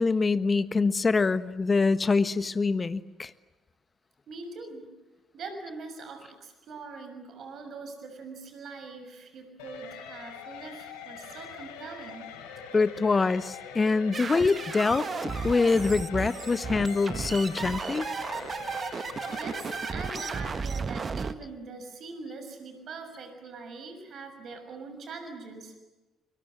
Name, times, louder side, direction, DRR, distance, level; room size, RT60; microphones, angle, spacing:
voice 1, 0.0-3.3 12.7-18.1, left 4 dB, 30° left, 14 dB, 1.4 m, -25 dB
voice 2, 4.3-4.9 5.3-12.3 18.9-25.8, right 4 dB, 55° right, 7 dB, 6.5 m, -42 dB
sound 1, 9.6-20.5, left 6 dB, 80° left, 3.9 m, -43 dB
sound 2, 14.1-21.3, right 5 dB, 40° right, 1.5 m, -34 dB
30.0 x 23.0 x 7.6 m, 1.1 s
hypercardioid pair, 50°, 0 cm